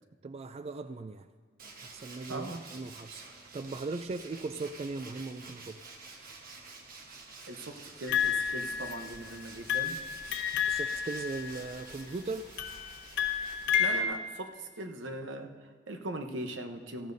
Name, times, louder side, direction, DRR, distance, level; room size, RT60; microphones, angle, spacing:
voice 1, 0.2-1.3 1.8-5.8 10.7-12.5, right 3 dB, 35° right, 10 dB, 0.3 m, -39 dB
Tools, 1.6-14.1, right 3 dB, 50° right, 1.2 m, -50 dB
voice 2, 2.3-2.6 7.5-10.0 13.8-17.1, right 2 dB, 80° right, 5 dB, 0.9 m, -40 dB
sound 1, 8.1-9.3 9.7-11.9 12.6-14.0, left 8 dB, 70° left, 1.1 m, -31 dB
17.0 x 14.0 x 2.7 m, 1.5 s
head